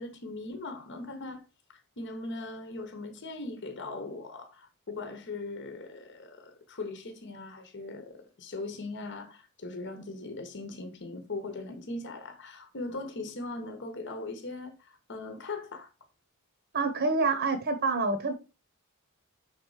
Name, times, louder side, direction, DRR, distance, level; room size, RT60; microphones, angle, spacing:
voice 1, 0.0-1.4 1.7-15.9, left 2 dB, 55° left, 1.0 m, -40 dB
voice 2, 16.7-18.3, right 3 dB, 50° right, 0.9 m, -27 dB
5.8 x 4.1 x 4.7 m
head